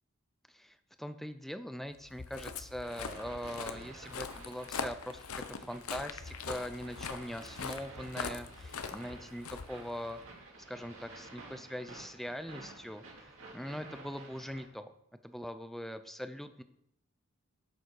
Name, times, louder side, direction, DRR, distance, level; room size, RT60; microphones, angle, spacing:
voice 1, 0.5-10.2 10.7-14.9 15.2-16.6, equal, ahead, 10 dB, 0.5 m, -42 dB
Walk footsteps, 2.0-10.3, left 5 dB, 75° left, 0.8 m, -42 dB
sound 1, 2.8-14.7, right 2 dB, 60° right, 2.4 m, -52 dB
11.5 x 7.2 x 4.6 m, 0.78 s
head